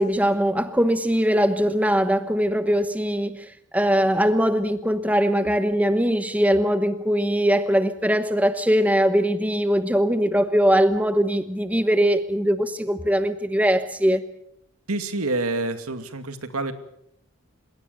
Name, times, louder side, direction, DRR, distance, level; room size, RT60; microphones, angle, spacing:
voice 1, 0.0-14.2, equal, 5° right, 1.0 m, -21 dB
voice 2, 14.9-16.7, right 2 dB, 90° right, 2.3 m, -27 dB
30.0 x 17.0 x 6.9 m
head